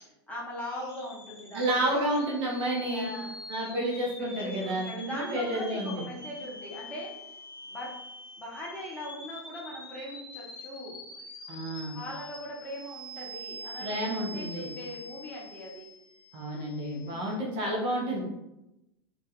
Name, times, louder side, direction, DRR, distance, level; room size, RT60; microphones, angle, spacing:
voice 1, 0.3-1.9 2.9-3.4 4.2-7.2 7.7-8.0 8.4-11.0 11.9-15.9 17.0-17.6, left 1 dB, 10° left, -6 dB, 0.8 m, -40 dB
sound 1, 0.6-17.3, left 1 dB, 65° left, 0.8 m, -45 dB
voice 2, 1.5-3.1 3.5-6.0 11.5-12.0 13.8-14.7 16.3-18.2, right 1 dB, 40° right, -2 dB, 0.6 m, -30 dB
2.2 x 2.1 x 2.8 m, 0.89 s
figure-of-eight pair, 90°, 14 cm